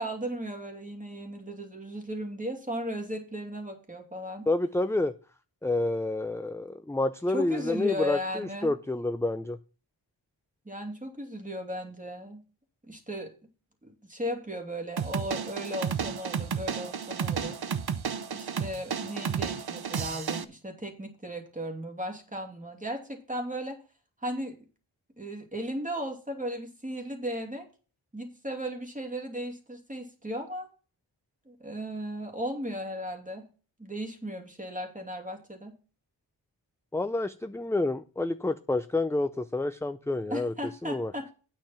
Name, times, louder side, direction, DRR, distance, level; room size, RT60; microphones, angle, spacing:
voice 1, 0.0-4.5 7.3-8.7 10.6-12.4 12.9-13.3 13.8-17.6 18.3-23.8 24.2-24.6 25.2-27.7 28.1-30.7 31.5-33.4 33.8-35.7 40.3-41.3, equal, 15° right, 3 dB, 2.6 m, -36 dB
voice 2, 4.5-5.1 5.6-9.6 36.9-40.5 40.8-41.1, left 2 dB, 5° left, 10 dB, 0.4 m, -29 dB
sound 1, 15.0-20.4, right 7 dB, 50° right, 0.8 m, -32 dB
9.0 x 6.8 x 5.8 m, 0.36 s
wide cardioid pair, 95°, 48 cm